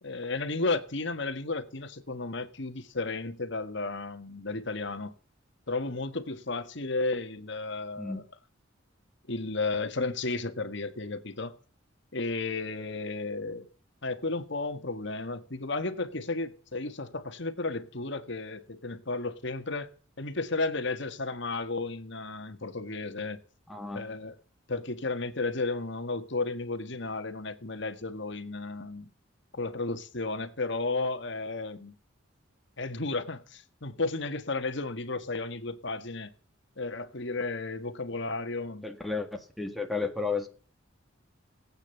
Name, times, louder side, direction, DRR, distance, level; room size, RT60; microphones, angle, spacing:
voice 1, 0.0-5.1 5.7-8.2 9.3-11.6 12.1-13.7 14.0-19.9 20.2-23.4 23.9-24.3 24.7-29.1 29.5-32.0 32.8-36.3 36.8-38.9, left 3 dB, 60° left, 1.6 m, -33 dB
voice 2, 23.7-24.1 38.8-40.5, left 4 dB, ahead, 1.8 m, -33 dB
19.0 x 9.0 x 6.8 m
head